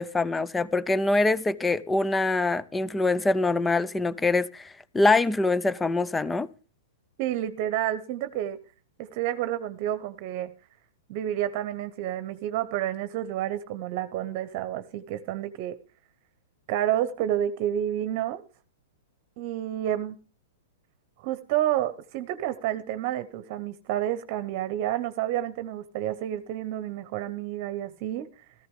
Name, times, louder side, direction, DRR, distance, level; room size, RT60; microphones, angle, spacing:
voice 1, 0.0-6.5, left 2 dB, 10° left, 0.7 m, -24 dB
voice 2, 7.2-8.6 9.0-10.5 11.1-15.8 16.7-18.4 19.4-20.2 21.2-28.3, right 12 dB, 50° right, 1.0 m, -29 dB
14.5 x 14.5 x 3.7 m
hypercardioid pair, 125°, 0 cm